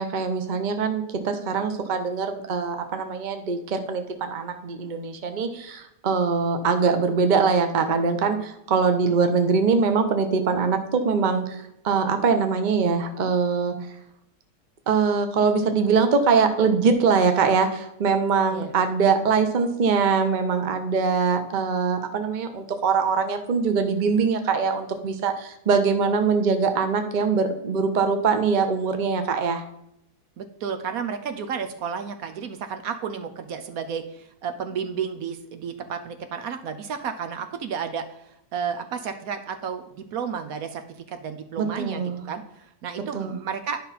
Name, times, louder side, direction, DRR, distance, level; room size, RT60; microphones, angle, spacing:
voice 1, 0.0-11.6 11.8-13.7 14.9-29.6 41.6-42.2 43.1-43.4, right 5 dB, 35° right, 7 dB, 0.8 m, -23 dB
voice 2, 30.4-43.8, right 7 dB, 70° right, 7 dB, 1.1 m, -32 dB
11.0 x 5.5 x 4.1 m, 0.81 s
omnidirectional pair, 1.6 m